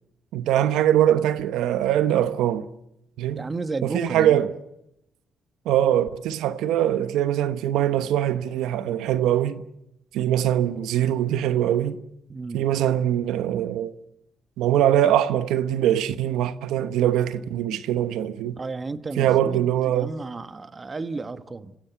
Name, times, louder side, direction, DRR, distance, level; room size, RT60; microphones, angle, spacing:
voice 1, 0.3-2.7 3.2-3.5 3.8-4.5 5.6-9.6 10.1-12.0 12.5-13.9 14.6-18.6 19.2-20.1, right 11 dB, 90° right, 1.1 m, -22 dB
voice 2, 3.3-4.5 12.3-12.7 18.5-21.8, right 3 dB, 35° right, 1.4 m, -33 dB
30.0 x 16.0 x 8.2 m
cardioid pair, 75°, 0 cm